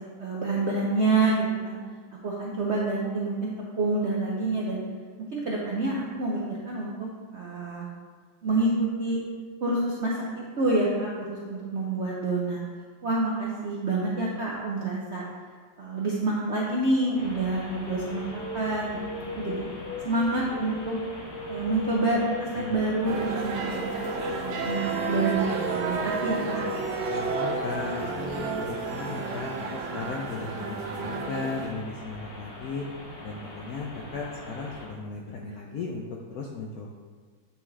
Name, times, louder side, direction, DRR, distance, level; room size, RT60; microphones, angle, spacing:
voice 1, 0.2-1.8 2.2-4.8 5.3-7.1 7.3-7.9 8.4-8.7 9.0-9.2 9.6-12.6 13.0-15.2 15.8-19.6 20.0-20.9 21.5-23.9 24.2-26.7, right 2 dB, 65° right, -4 dB, 0.6 m, -28 dB
sound 1, 17.1-34.9, left 1 dB, 50° left, 1.5 m, -43 dB
sound 2, 18.1-27.7, left 1 dB, 20° right, 0.9 m, -38 dB
sound 3, 23.1-31.7, right 4 dB, 85° right, 1.4 m, -32 dB
voice 2, 27.1-32.8 33.2-36.0 36.3-36.9, left 4 dB, 75° left, 0 dB, 0.8 m, -36 dB
8.5 x 3.5 x 3.2 m, 1.6 s
omnidirectional pair, 2.1 m